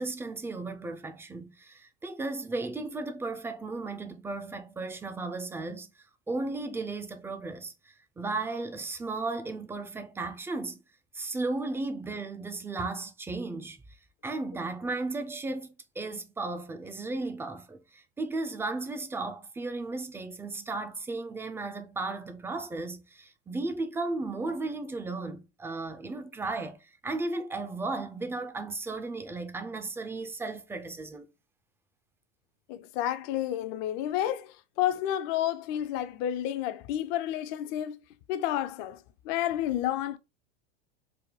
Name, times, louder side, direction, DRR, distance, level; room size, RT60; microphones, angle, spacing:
voice 1, 0.0-5.9 6.3-10.8 11.1-13.8 14.2-31.3, right 3 dB, 10° right, 0.3 m, -35 dB
voice 2, 32.7-38.0 38.3-40.2, left 12 dB, 50° left, 0.5 m, -30 dB
3.4 x 2.1 x 3.5 m
hypercardioid pair, 105°, 32 cm